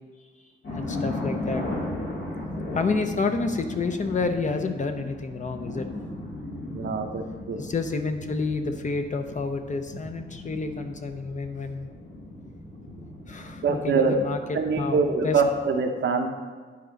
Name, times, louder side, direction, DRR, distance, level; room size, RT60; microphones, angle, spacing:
sound 1, 0.6-15.7, left 1 dB, 80° left, 2.1 m, -36 dB
voice 1, 0.8-1.6 2.7-5.9 7.6-11.9 13.3-15.4, left 4 dB, 40° left, 6 dB, 0.7 m, -29 dB
voice 2, 6.7-7.6 13.6-14.1 14.5-16.3, right 4 dB, 75° right, 4 dB, 0.9 m, -24 dB
10.5 x 4.1 x 5.2 m, 1.5 s
cardioid pair, 95°, 20 cm